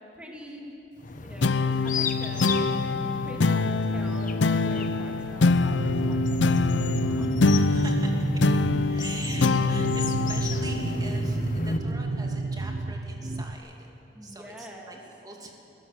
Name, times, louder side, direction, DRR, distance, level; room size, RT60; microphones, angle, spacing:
voice 1, 0.1-0.7 1.2-2.7 3.2-7.3 14.1-15.0, equal, 5° right, -1 dB, 2.7 m, -45 dB
sound 1, 1.0-11.8, left 3 dB, 45° left, 1.1 m, -35 dB
sound 2, 1.4-12.2, left 3 dB, 80° left, 0.6 m, -25 dB
sound 3, 5.6-13.5, right 2 dB, 50° right, 0.7 m, -31 dB
voice 2, 7.2-8.1 8.8-13.9 14.2-15.0 15.2-15.5, right 2 dB, 20° right, 1 dB, 2.6 m, -43 dB
23.0 x 15.0 x 7.6 m, 2.7 s
head